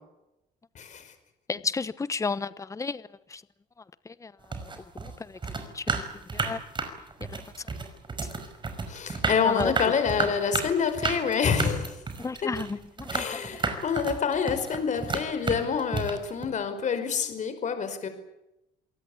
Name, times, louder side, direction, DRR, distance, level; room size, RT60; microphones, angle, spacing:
voice 1, 0.7-1.1 8.9-12.0 12.4-12.5 13.1-18.1, left 6 dB, 45° left, 5.0 m, -27 dB
voice 2, 1.5-3.0 3.3-3.4 4.1-4.3 5.0-5.4 5.7-6.0 6.3-6.6 9.4-9.7 12.2-13.4, left 4 dB, 20° left, 1.0 m, -32 dB
sound 1, 4.4-16.5, right 4 dB, 30° right, 5.4 m, -32 dB
27.0 x 18.5 x 8.5 m
cardioid pair, 110°, 17 cm